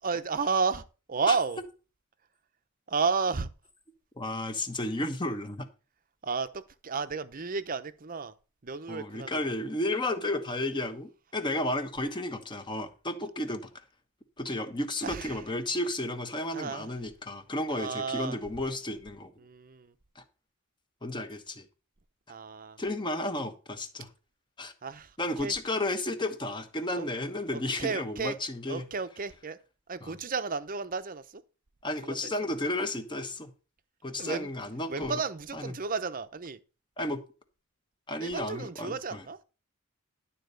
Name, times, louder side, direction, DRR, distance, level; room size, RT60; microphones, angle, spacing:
voice 1, 0.0-1.6 2.9-3.5 6.2-8.3 8.6-9.5 15.0-15.4 16.5-17.0 17.7-18.4 19.4-19.9 22.3-22.8 24.8-25.5 27.0-27.1 27.5-28.4 28.7-29.6 29.9-31.4 32.0-32.3 34.2-34.5 34.9-36.6 38.2-39.4, right 5 dB, 40° right, 0.7 m, -32 dB
voice 2, 4.2-5.7 8.9-13.7 14.4-19.3 20.2-20.3 21.0-21.6 22.8-24.1 24.6-24.7 25.2-28.8 30.0-30.1 31.8-33.5 34.0-35.2 35.5-35.7 37.0-37.2 38.1-39.2, left 1 dB, 20° left, 1.1 m, -33 dB
11.5 x 4.2 x 6.8 m
head